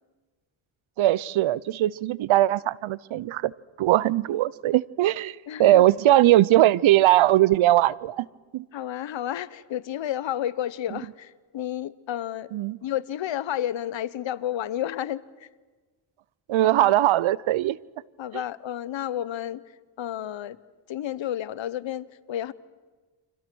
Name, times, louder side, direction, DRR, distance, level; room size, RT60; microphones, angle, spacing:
voice 1, 1.0-3.5 3.8-8.3 8.5-8.6 12.5-12.8 16.5-17.8, right 14 dB, 70° right, 0.8 m, -20 dB
voice 2, 5.5-5.8 8.7-12.5 12.8-15.5 16.6-16.9 18.2-19.6 20.0-20.6 20.9-22.5, left 11 dB, 65° left, 1.1 m, -31 dB
30.0 x 26.0 x 6.3 m
cardioid pair, 80°, 49 cm